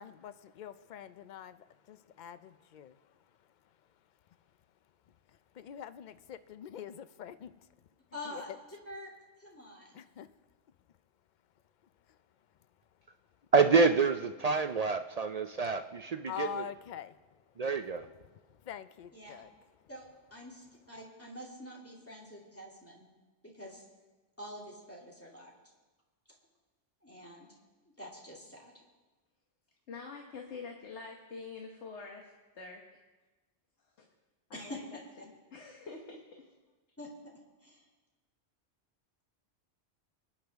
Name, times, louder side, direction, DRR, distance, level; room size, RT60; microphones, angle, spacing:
voice 1, 0.0-3.1 5.3-7.7 8.2-8.4 9.9-10.3 12.1-12.2 16.3-17.4 18.2-19.5, left 8 dB, 55° left, 0.5 m, -45 dB
voice 2, 8.1-8.5 8.9-9.1 9.4-10.0 19.1-19.4 19.9-23.1 23.4-23.8 24.4-25.5 27.0-27.6 27.9-28.8 34.5-34.8 35.2-35.3 37.0-37.9, left 1 dB, 10° left, 2.5 m, -47 dB
voice 3, 13.5-16.5 17.6-18.1, right 4 dB, 55° right, 0.4 m, -27 dB
voice 4, 29.9-32.8 34.0-34.1 34.5-36.5, left 4 dB, 75° left, 1.5 m, -46 dB
23.5 x 9.6 x 3.5 m
omnidirectional pair, 1.2 m